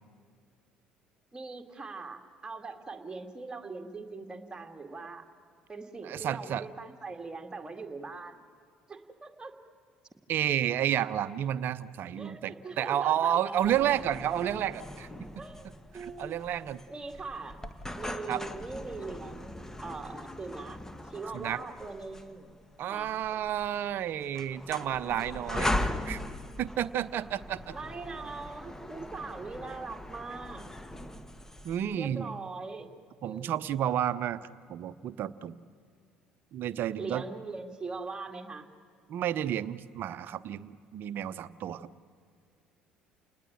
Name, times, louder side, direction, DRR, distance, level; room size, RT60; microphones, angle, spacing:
voice 1, 1.3-5.2 5.7-8.4 8.9-9.5 12.2-13.6 15.4-16.4 16.9-22.6 22.9-23.4 27.7-30.7 31.9-32.9 33.2-33.8 37.0-38.7, right 3 dB, 15° right, 4 dB, 2.3 m, -41 dB
voice 2, 6.0-6.7 10.3-15.1 15.9-16.8 18.3-18.4 21.3-21.6 22.8-26.2 26.6-27.6 31.6-32.4 33.2-35.6 36.5-37.2 39.1-41.9, right 10 dB, 50° right, 15 dB, 0.8 m, -31 dB
sound 1, 13.6-31.9, left 1 dB, 10° left, 1.3 m, -39 dB
29.0 x 19.5 x 9.1 m, 2.2 s
figure-of-eight pair, 55°, 4 cm